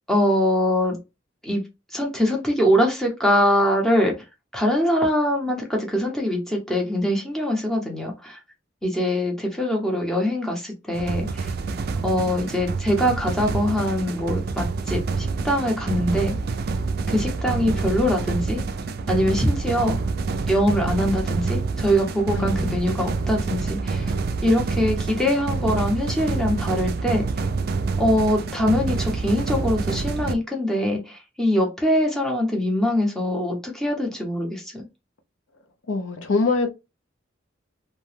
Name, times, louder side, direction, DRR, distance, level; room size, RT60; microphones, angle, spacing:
voice 1, 0.1-1.0 1.4-1.6 1.9-4.1 4.5-8.4 8.8-11.5 12.0-16.4 17.1-18.6 19.1-20.0 20.5-24.0 24.4-27.3 28.0-34.8, equal, ahead, 0.7 m, -23 dB
sound 1, 10.9-30.3, right 4 dB, 50° right, 0.3 m, -27 dB
voice 2, 22.3-23.2 35.9-36.7, left 3 dB, 80° left, 0.6 m, -25 dB
2.8 x 2.2 x 3.2 m
head